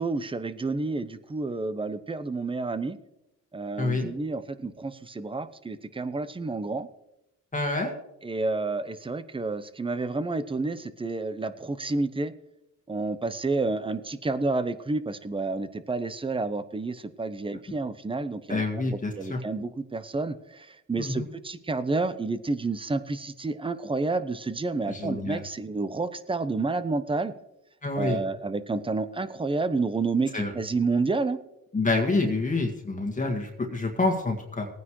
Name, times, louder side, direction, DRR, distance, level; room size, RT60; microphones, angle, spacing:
voice 1, 0.0-3.0 3.5-6.9 8.2-12.3 12.9-27.3 28.0-31.4, right 3 dB, 15° right, 13 dB, 0.8 m, -30 dB
voice 2, 3.8-4.1 7.5-7.9 18.5-19.4 21.0-21.3 24.9-25.4 27.8-28.2 30.3-30.5 31.7-34.7, left 2 dB, 25° left, 2 dB, 1.8 m, -27 dB
19.0 x 9.4 x 3.2 m, 0.89 s
cardioid pair, 90°, 30 cm